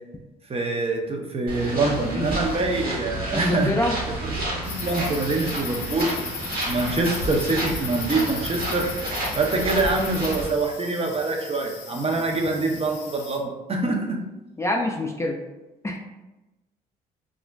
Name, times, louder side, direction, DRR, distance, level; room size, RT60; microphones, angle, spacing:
voice 1, 0.5-3.7 4.3-6.1 6.6-8.9 9.4-14.2, right 3 dB, 35° right, 2 dB, 0.6 m, -25 dB
sound 1, 1.5-10.5, right 1 dB, 60° right, 1.1 m, -30 dB
voice 2, 3.3-4.0 14.6-15.4 15.8-16.0, left 1 dB, 15° left, 1 dB, 0.4 m, -25 dB
sound 2, 4.6-13.4, left 6 dB, 80° left, 0.5 m, -37 dB
2.5 x 2.1 x 3.3 m, 1.0 s
supercardioid pair, 60°, 18 cm